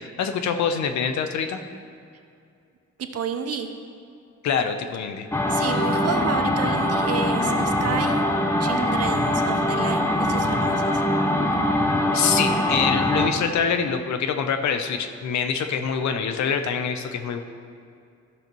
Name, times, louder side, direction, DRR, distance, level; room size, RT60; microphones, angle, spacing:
voice 1, 0.0-1.6 4.4-5.3 12.1-17.4, left 6 dB, 65° left, 7 dB, 0.8 m, -25 dB
voice 2, 3.1-3.7 5.5-8.3 8.6-10.9, right 6 dB, 55° right, 6 dB, 0.9 m, -30 dB
sound 1, 5.3-13.3, left 1 dB, 10° left, 0.8 m, -22 dB
13.5 x 6.5 x 3.1 m, 2.4 s
cardioid pair, 90°, 30 cm